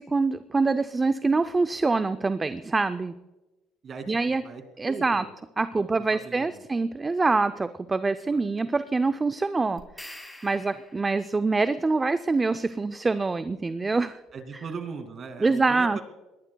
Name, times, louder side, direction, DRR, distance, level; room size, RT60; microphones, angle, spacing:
voice 1, 0.0-3.2 4.1-4.4 4.8-5.2 5.6-9.8 10.4-14.2 15.4-16.0, right 3 dB, 20° right, 10 dB, 0.5 m, -25 dB
voice 2, 3.8-5.3 6.1-6.5 6.8-6.9 8.3-8.4 10.5-10.6 14.3-16.0, right 5 dB, 40° right, 7 dB, 2.4 m, -39 dB
sound 1, 9.8-11.4, left 1 dB, 10° left, 3.0 m, -45 dB
22.5 x 19.0 x 2.3 m, 1.1 s
cardioid pair, 120°, 0 cm